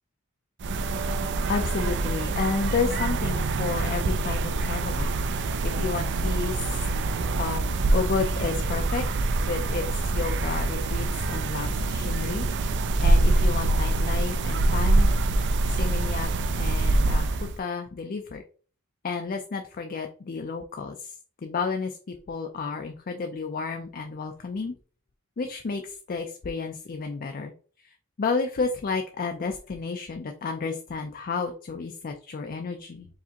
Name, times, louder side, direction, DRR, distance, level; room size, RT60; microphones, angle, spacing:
sound 1, 0.6-17.6, right 2 dB, 55° right, 0.5 m, -25 dB
voice 1, 1.5-6.9 7.4-15.1 15.7-16.3 16.6-17.3 17.6-18.4 19.0-21.2 21.4-22.0 22.3-24.8 25.4-27.5 27.8-33.1, left 4 dB, 40° left, 4 dB, 0.4 m, -31 dB
4.8 x 3.3 x 2.8 m, 0.41 s
head